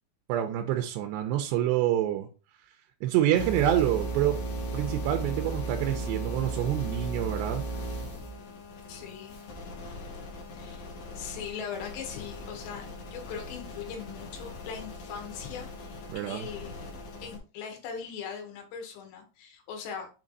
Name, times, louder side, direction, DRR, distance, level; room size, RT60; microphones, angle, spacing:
voice 1, 0.3-2.3 3.0-4.4 4.7-7.6 16.1-16.5, right 12 dB, 80° right, 4 dB, 2.7 m, -27 dB
sound 1, 3.3-17.4, right 2 dB, 55° left, 2.0 m, -37 dB
voice 2, 8.9-9.4 10.5-16.7 17.2-20.1, left 7 dB, 75° left, 3 dB, 3.5 m, -40 dB
7.5 x 3.3 x 4.0 m, 0.33 s
omnidirectional pair, 5.2 m